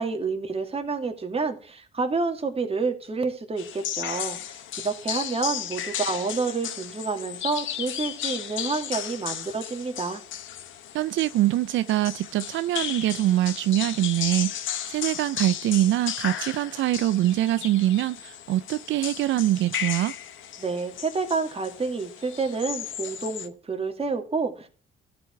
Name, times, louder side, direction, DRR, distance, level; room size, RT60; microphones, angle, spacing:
voice 1, 0.0-10.2 20.6-24.7, right 4 dB, 30° right, 2.1 m, -29 dB
sound 1, 3.6-23.5, left 10 dB, 75° left, 1.1 m, -35 dB
voice 2, 10.9-20.2, right 14 dB, 75° right, 0.4 m, -24 dB
13.5 x 4.8 x 5.8 m
cardioid pair, 90°, 20 cm